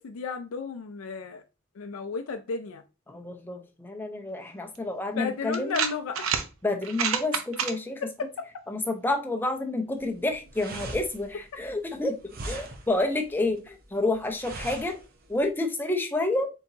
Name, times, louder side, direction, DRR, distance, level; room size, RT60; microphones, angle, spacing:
voice 1, 0.0-1.4 1.8-2.8 5.1-6.3 8.0-8.3, left 5 dB, 80° left, 7 dB, 0.4 m, -33 dB
voice 2, 3.1-5.8 6.6-8.0 8.7-15.0 15.3-16.5, left 2 dB, 10° left, 3 dB, 0.6 m, -29 dB
sound 1, 4.7-4.8 5.5-6.4 6.8-7.7, right 7 dB, 75° right, 0.6 m, -28 dB
sound 2, 10.0-15.5, right 2 dB, 45° right, 0.8 m, -41 dB
4.4 x 3.8 x 2.7 m, 0.31 s
head